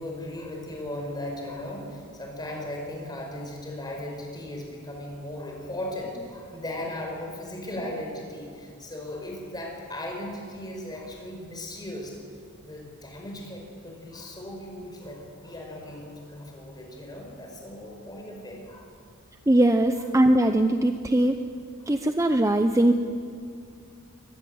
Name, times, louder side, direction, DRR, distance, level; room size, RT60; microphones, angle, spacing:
voice 1, 0.0-12.2 12.6-18.9 21.8-21.9, left 1 dB, 20° left, 1 dB, 5.3 m, -37 dB
voice 2, 19.5-21.4 21.9-22.9, right 1 dB, 15° right, 7 dB, 0.7 m, -21 dB
23.0 x 19.0 x 8.0 m, 2.3 s
head